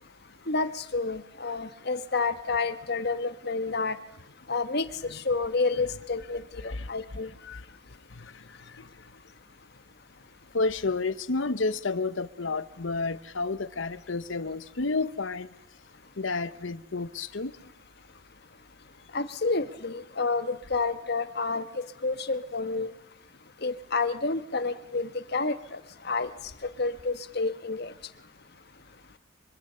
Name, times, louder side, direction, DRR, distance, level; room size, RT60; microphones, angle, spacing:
voice 1, 0.5-4.0 4.5-7.3 19.1-22.9 23.6-25.8 26.0-26.3 26.8-27.9, left 3 dB, 50° left, 1.3 m, -29 dB
voice 2, 8.1-8.8 10.5-15.5 16.2-17.5 22.8-22.9, left 3 dB, 70° left, 1.0 m, -31 dB
24.5 x 24.5 x 6.8 m
head